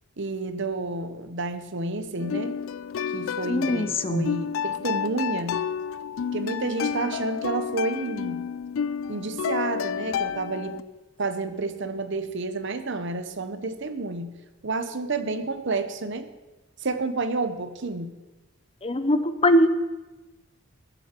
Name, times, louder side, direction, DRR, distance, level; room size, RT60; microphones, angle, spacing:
voice 1, 0.2-2.6 3.1-5.6 6.3-8.4 9.1-10.9 11.2-14.3 14.6-16.3 16.8-18.1, right 3 dB, 60° right, 10 dB, 0.9 m, -30 dB
sound 1, 2.2-10.8, left 7 dB, 70° left, 0.4 m, -30 dB
voice 2, 3.5-4.3 18.8-19.7, left 1 dB, 25° left, 11 dB, 0.7 m, -22 dB
20.5 x 8.0 x 4.5 m, 1.2 s
head